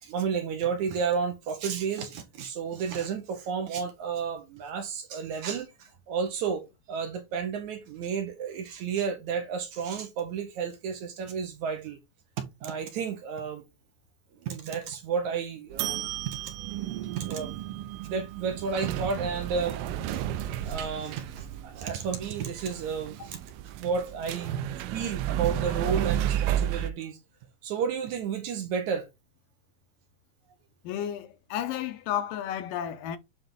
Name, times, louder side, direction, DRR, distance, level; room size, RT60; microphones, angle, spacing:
voice 1, 0.0-6.6 6.9-12.0 12.4-13.6 14.4-16.5 17.2-17.6 17.9-19.8 20.1-23.4 23.8-24.6 24.9-27.2 27.6-29.1, right 6 dB, 65° right, 2.3 m, -32 dB
sound 1, 15.7-26.9, right 11 dB, 90° right, 2.4 m, -32 dB
voice 2, 30.8-33.2, left 10 dB, 80° left, 2.4 m, -32 dB
9.1 x 3.7 x 3.9 m
omnidirectional pair, 4.1 m